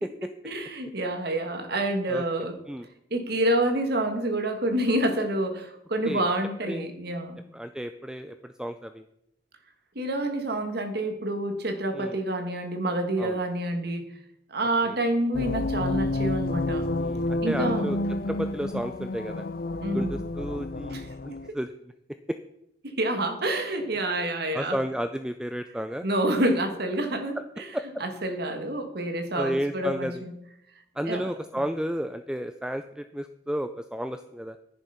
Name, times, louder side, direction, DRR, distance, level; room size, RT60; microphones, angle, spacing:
voice 1, 0.4-2.6 3.1-7.4 9.9-14.1 14.5-16.9 17.4-17.9 19.8-20.1 20.9-21.1 22.8-24.8 26.0-27.7 28.0-30.3 31.1-31.3, right 1 dB, 60° right, 6 dB, 1.8 m, -28 dB
voice 2, 2.1-2.9 6.1-6.3 6.7-6.9 7.5-9.0 11.9-12.2 13.2-13.4 14.8-15.0 17.0-18.0 18.3-19.5 19.9-21.7 24.5-26.1 27.7-27.8 29.3-30.2 31.0-34.6, equal, 5° right, 9 dB, 0.4 m, -32 dB
sound 1, 15.3-21.5, left 2 dB, 50° left, 0.5 m, -30 dB
10.5 x 10.5 x 5.7 m, 0.80 s
head